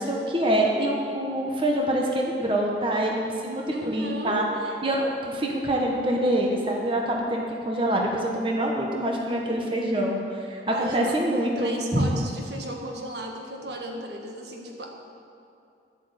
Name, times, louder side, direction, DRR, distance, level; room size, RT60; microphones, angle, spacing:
voice 1, 0.0-4.4 4.8-12.1, right 1 dB, 30° right, -1 dB, 1.3 m, -25 dB
voice 2, 3.7-4.5 10.7-14.9, right 1 dB, 75° right, 1 dB, 1.6 m, -35 dB
11.5 x 7.9 x 8.1 m, 2.6 s
head